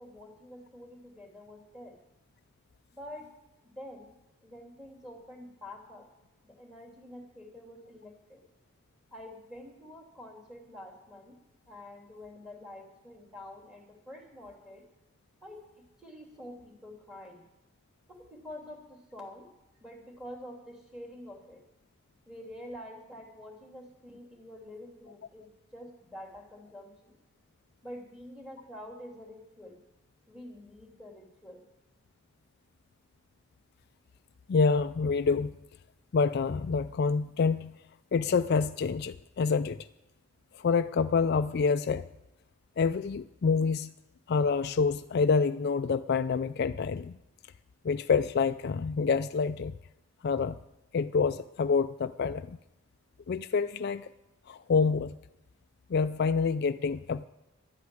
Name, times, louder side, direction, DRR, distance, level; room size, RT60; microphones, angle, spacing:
voice 1, 0.0-1.9 2.9-3.3 3.6-4.1 4.4-6.1 6.4-8.4 9.1-11.4 11.7-14.8 15.4-15.6 16.0-17.4 18.1-19.5 19.8-21.6 22.3-27.2 27.8-29.8 30.3-31.6, left 1 dB, 5° right, 1 dB, 2.8 m, -47 dB
voice 2, 34.5-35.6 36.1-37.7 38.1-39.8 40.5-42.1 42.8-43.9 44.3-47.2 47.8-49.7 50.2-50.6 50.9-52.6 53.3-54.1 54.5-55.2 55.9-57.3, left 5 dB, 50° left, 11 dB, 0.4 m, -27 dB
12.0 x 8.3 x 9.6 m, 0.97 s
head